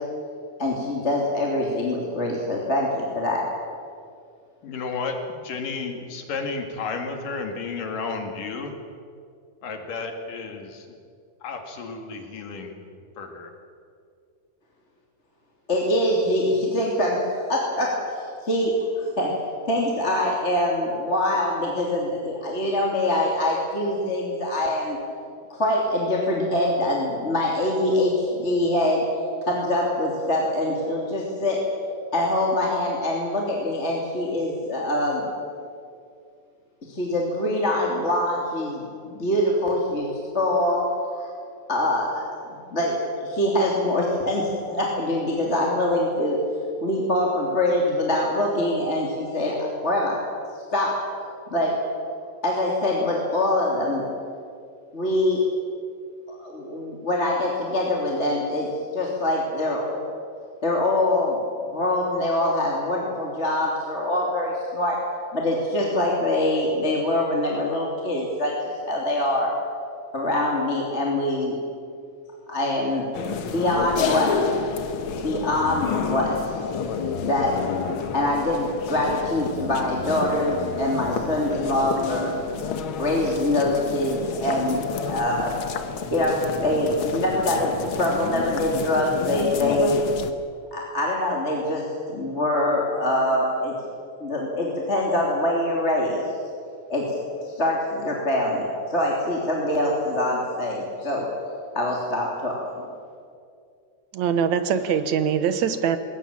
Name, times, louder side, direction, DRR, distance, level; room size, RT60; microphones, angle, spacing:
voice 1, 0.6-3.4 15.7-17.2 17.5-19.3 19.7-25.0 25.5-29.0 29.4-31.6 32.1-35.3 36.9-40.1 40.3-40.8 41.1-41.3 41.7-42.3 42.7-46.4 46.8-50.2 50.7-50.9 51.5-51.8 52.4-54.0 54.9-55.4 56.4-60.0 60.6-61.4 61.7-65.0 65.3-69.5 70.1-71.6 72.5-73.0 73.5-74.4 75.2-76.4 77.2-77.6 78.1-82.3 83.0-85.5 86.1-90.0 90.7-93.7 94.2-96.2 96.9-97.0 97.4-101.3 101.7-102.6, left 1 dB, 20° left, -2 dB, 3.0 m, -24 dB
voice 2, 4.6-8.7 9.6-10.9 11.4-12.8 13.2-13.5, left 4 dB, 80° left, 4 dB, 3.9 m, -32 dB
sound 1, 73.1-90.3, left 6 dB, 60° left, 1.4 m, -30 dB
voice 3, 104.1-106.0, right 7 dB, 70° right, 11 dB, 2.2 m, -23 dB
21.5 x 18.0 x 8.9 m, 2.3 s
omnidirectional pair, 3.8 m